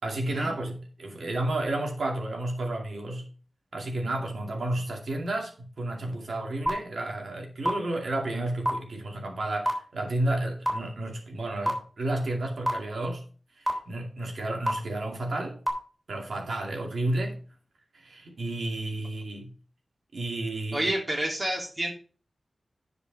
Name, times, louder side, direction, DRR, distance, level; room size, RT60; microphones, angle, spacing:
voice 1, 0.0-3.3 3.7-13.2 13.6-15.6 16.1-17.4 17.9-19.5 20.1-20.9, right 1 dB, 85° right, 2.3 m, -31 dB
sound 1, 6.7-6.8 7.6-7.7 8.6-8.7 9.7-9.8 10.7-10.8 11.7-11.8 12.7-12.8 13.7-13.8 14.7-14.8 15.7-15.8, right 1 dB, 10° right, 3.4 m, -23 dB
voice 2, 20.7-21.9, right 1 dB, 35° right, 3.2 m, -29 dB
10.0 x 5.2 x 5.3 m
wide cardioid pair, 95°, 0 cm